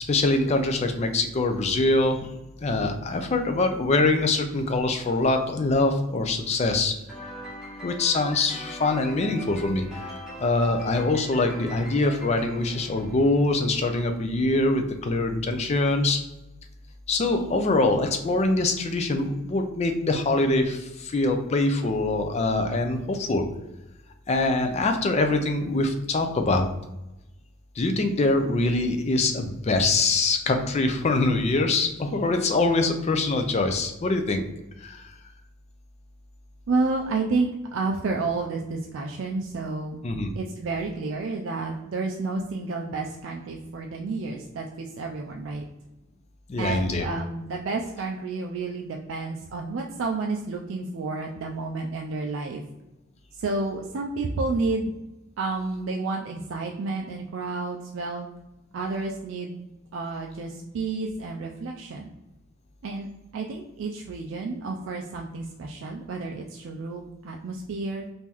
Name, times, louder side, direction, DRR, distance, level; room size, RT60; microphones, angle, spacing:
voice 1, 0.1-2.3 2.6-6.9 7.8-16.2 17.1-23.4 24.3-26.7 27.8-34.4 34.8-35.1 40.0-40.3 46.5-47.1, left 2 dB, 30° left, 6 dB, 0.3 m, -24 dB
sound 1, 7.1-13.7, left 1 dB, 5° right, 1.0 m, -41 dB
voice 2, 36.7-40.0 40.3-45.6 46.6-52.6 53.3-54.9 55.4-58.3 58.7-59.6 59.9-62.1 62.8-63.1 63.3-68.1, right 3 dB, 60° right, 1 dB, 0.3 m, -30 dB
2.9 x 2.6 x 3.6 m, 0.96 s
head